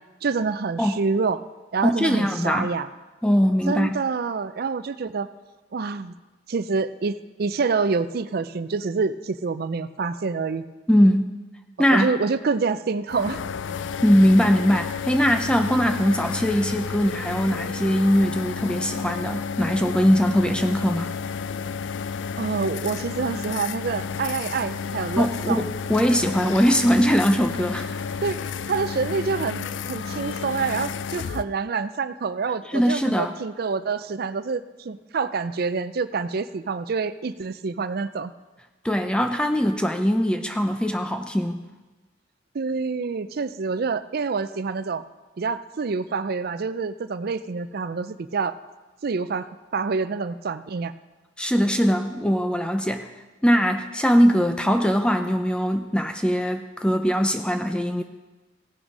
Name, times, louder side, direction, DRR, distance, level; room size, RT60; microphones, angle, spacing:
voice 1, 0.2-1.4 1.7-2.9 3.7-5.3 5.7-6.1 6.5-10.6 11.9-13.4 22.4-25.7 28.2-28.4 28.7-38.3 42.5-45.0 45.4-48.5 49.0-49.5 49.7-50.9, right 4 dB, 55° right, 14 dB, 0.4 m, -27 dB
voice 2, 1.8-2.7 3.2-4.0 10.9-11.3 11.8-12.1 14.0-21.1 25.2-27.9 32.7-33.3 38.8-41.6 51.4-53.1 53.4-58.0, equal, 5° left, 6 dB, 0.4 m, -21 dB
sound 1, 13.1-31.4, left 6 dB, 80° left, 0.4 m, -31 dB
16.5 x 6.1 x 5.3 m, 1.2 s
head